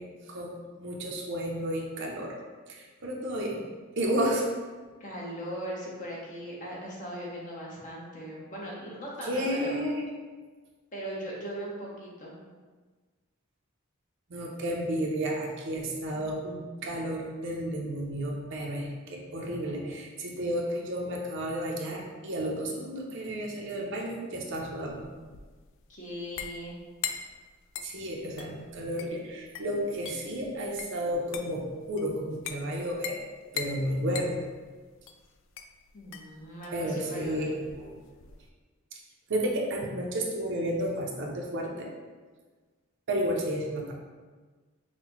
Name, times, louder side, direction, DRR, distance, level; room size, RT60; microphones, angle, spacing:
voice 1, 0.0-2.3 2.7-3.6 4.0-4.5 9.2-10.0 14.3-25.1 27.8-33.2 33.5-34.3 36.7-38.0 39.3-41.9 43.1-43.9, equal, 60° right, -1 dB, 0.6 m, -32 dB
voice 2, 5.0-9.8 10.9-12.3 25.9-26.7 35.9-37.4, equal, 40° left, -4 dB, 0.9 m, -39 dB
sound 1, 24.5-38.5, left 7 dB, 65° left, 0.3 m, -42 dB
5.6 x 2.2 x 3.0 m, 1.4 s
head